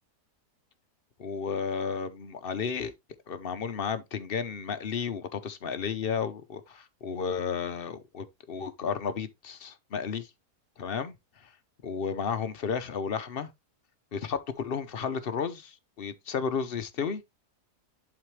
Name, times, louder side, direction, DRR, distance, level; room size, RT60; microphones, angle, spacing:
voice 1, 1.2-2.9 3.3-10.3 10.8-11.2 11.4-11.5 11.8-13.5 14.1-17.2, left 6 dB, 50° left, 0.7 m, -33 dB
11.0 x 4.1 x 3.1 m
omnidirectional pair, 1.7 m